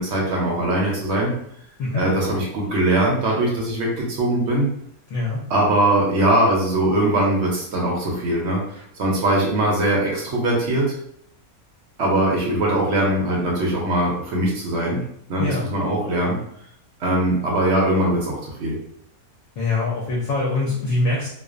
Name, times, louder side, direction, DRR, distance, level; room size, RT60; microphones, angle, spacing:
voice 1, 0.0-1.3 1.9-4.7 5.5-11.0 12.0-15.0 15.3-16.4 17.0-18.8, right 1 dB, 65° right, -2 dB, 0.7 m, -21 dB
voice 2, 19.6-21.3, left 2 dB, 65° left, -4 dB, 0.8 m, -23 dB
2.4 x 2.1 x 2.4 m, 0.70 s
omnidirectional pair, 1.6 m